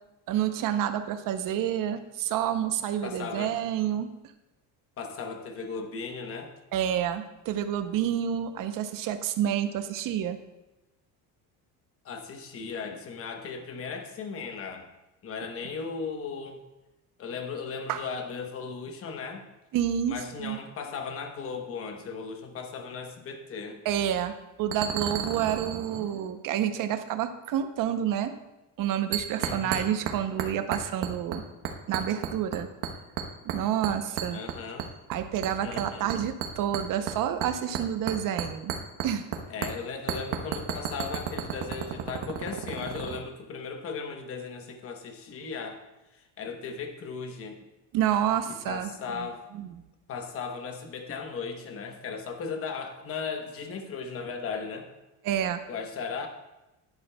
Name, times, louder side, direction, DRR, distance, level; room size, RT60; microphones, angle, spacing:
voice 1, 0.3-4.1 6.7-10.4 17.9-18.0 19.7-20.6 23.8-28.3 28.8-31.4 31.9-32.7 33.5-34.4 35.1-38.7 39.0-39.3 47.9-49.3 49.6-49.7 55.2-55.6, right 10 dB, 50° right, 9 dB, 0.7 m, -29 dB
voice 2, 3.0-3.6 5.0-6.5 12.0-14.9 15.2-16.6 17.2-19.4 20.1-23.8 29.4-30.0 34.3-34.9 35.6-36.2 39.5-47.6 48.4-49.4 50.1-54.9 55.7-56.3, left 5 dB, 35° left, 5 dB, 1.0 m, -37 dB
sound 1, 24.0-24.2 24.7-26.3 29.1-30.1 30.4-31.4 31.6-32.6 32.8-33.6 33.8-35.1 35.4-39.4 39.6-39.7 40.1-43.2, right 8 dB, 70° right, 1.0 m, -32 dB
11.0 x 10.5 x 2.2 m, 0.99 s
cardioid pair, 155°, 41 cm